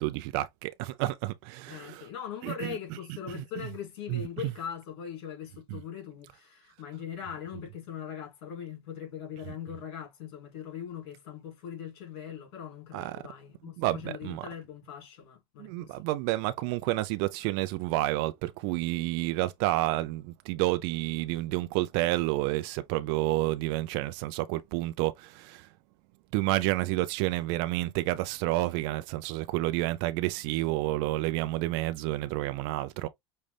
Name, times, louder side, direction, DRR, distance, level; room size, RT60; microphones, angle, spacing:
voice 1, 0.0-2.1 2.4-2.8 3.3-3.4 4.1-4.2 5.7-5.8 12.9-13.2 13.8-14.5 15.6-25.7 26.3-33.1, right 17 dB, 65° right, 0.5 m, -30 dB
voice 2, 1.7-16.1, left 9 dB, 75° left, 2.9 m, -41 dB
5.4 x 2.4 x 3.3 m
supercardioid pair, 100°, 14 cm